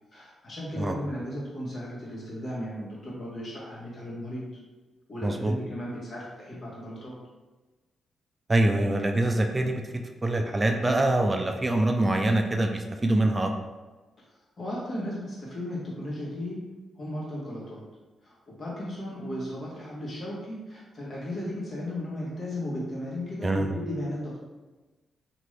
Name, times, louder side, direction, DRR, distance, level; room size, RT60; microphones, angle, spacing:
voice 1, 0.1-4.4 5.1-7.1 14.6-16.6 17.0-17.8 18.2-24.4, left 1 dB, 50° left, -6 dB, 1.3 m, -35 dB
voice 2, 5.2-5.5 8.5-9.8 10.2-13.5 23.4-23.8, right 1 dB, 25° right, 4 dB, 0.3 m, -24 dB
2.9 x 2.5 x 3.2 m, 1.2 s
cardioid pair, 60°, 0 cm